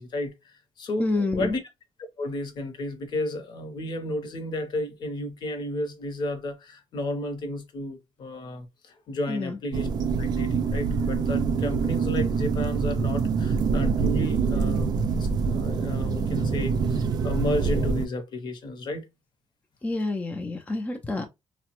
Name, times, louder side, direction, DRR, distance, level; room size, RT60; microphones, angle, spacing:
voice 1, 0.0-1.6 2.2-9.9 10.2-19.1, left 1 dB, 50° left, 0.8 m, -33 dB
voice 2, 1.0-1.5 9.3-9.6 19.8-21.2, left 2 dB, 15° left, 0.4 m, -28 dB
sound 1, 9.7-18.1, right 5 dB, 45° right, 0.4 m, -25 dB
3.2 x 2.0 x 2.9 m
cardioid pair, 125°, 10 cm